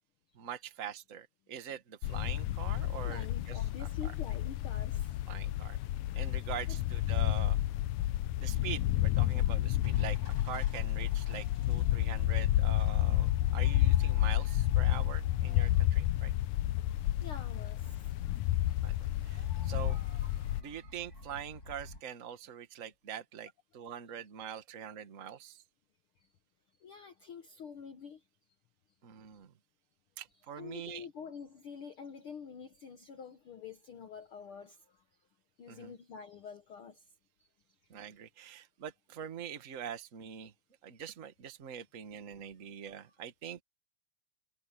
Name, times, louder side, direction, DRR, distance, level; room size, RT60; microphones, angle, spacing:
voice 1, 0.3-4.1 5.3-5.8 6.1-7.6 8.4-16.3 18.8-18.9 19.2-20.0 20.6-25.6 29.0-29.5 30.2-31.0 35.7-35.9 37.9-40.5 40.8-43.6, right 9 dB, 40° right, 1.2 m, -44 dB
sound 1, 2.0-20.6, left 14 dB, 80° left, 1.7 m, -30 dB
voice 2, 3.0-5.2 6.7-6.8 16.9-18.2 19.1-19.3 26.2-26.3 26.8-28.3 30.6-35.0 35.6-37.1 37.4-37.5, left 6 dB, 65° left, 1.4 m, -47 dB
sound 2, 9.7-22.0, left 2 dB, 25° left, 7.2 m, -52 dB
omnidirectional pair, 3.8 m